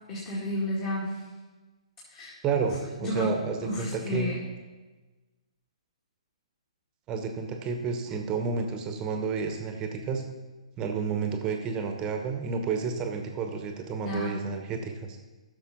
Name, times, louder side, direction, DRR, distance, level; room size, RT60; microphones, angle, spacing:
voice 1, 0.1-1.2 2.1-2.3 3.0-3.3 3.6-4.4 14.0-14.4, left 1 dB, 30° left, -5 dB, 2.3 m, -31 dB
voice 2, 2.4-4.3 7.1-10.2 10.8-15.2, right 5 dB, 20° right, 4 dB, 1.1 m, -31 dB
14.0 x 6.7 x 4.1 m, 1.2 s
figure-of-eight pair, 125°, 3 cm